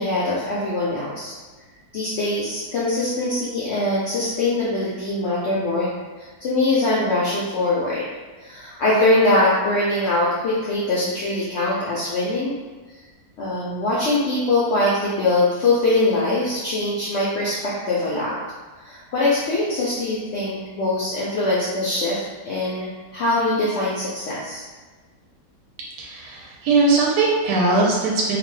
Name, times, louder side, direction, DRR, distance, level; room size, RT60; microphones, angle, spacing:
voice 1, 0.0-1.3 1.9-5.9 6.2-8.1 8.4-12.5 13.4-18.3 18.8-24.6, left 2 dB, 85° left, -6 dB, 0.6 m, -22 dB
voice 2, 26.0-28.4, right 3 dB, 85° right, -3 dB, 1.2 m, -20 dB
2.9 x 2.1 x 3.1 m, 1.4 s
omnidirectional pair, 1.8 m